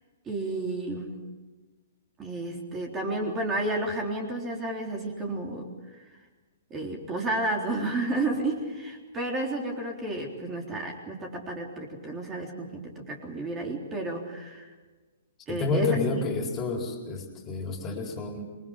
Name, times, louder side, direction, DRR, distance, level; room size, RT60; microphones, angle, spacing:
voice 1, 0.3-1.3 2.2-6.0 6.7-14.7 15.5-16.2, right 2 dB, 20° right, 1 dB, 3.7 m, -31 dB
voice 2, 15.5-18.4, left 3 dB, 25° left, 2 dB, 4.2 m, -29 dB
27.5 x 22.0 x 5.3 m, 1.3 s
hypercardioid pair, 125°, 0 cm